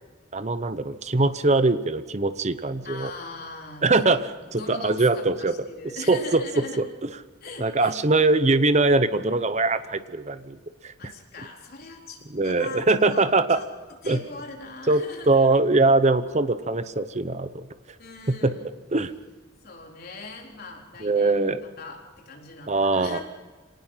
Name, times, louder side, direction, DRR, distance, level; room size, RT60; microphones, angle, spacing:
voice 1, 0.3-3.1 3.8-4.2 4.5-5.5 6.1-7.1 7.6-10.6 10.8-11.1 12.3-13.6 14.1-14.2 14.9-17.7 18.3-18.5 18.9-19.1 21.0-21.6 22.7-23.2, right 3 dB, 35° right, 12 dB, 0.9 m, -22 dB
voice 2, 2.8-4.2 4.5-6.8 7.4-7.9 11.0-13.7 14.0-15.6 18.0-18.7 19.6-23.2, left 3 dB, 50° left, 0 dB, 4.1 m, -41 dB
25.0 x 18.5 x 5.7 m, 1.4 s
head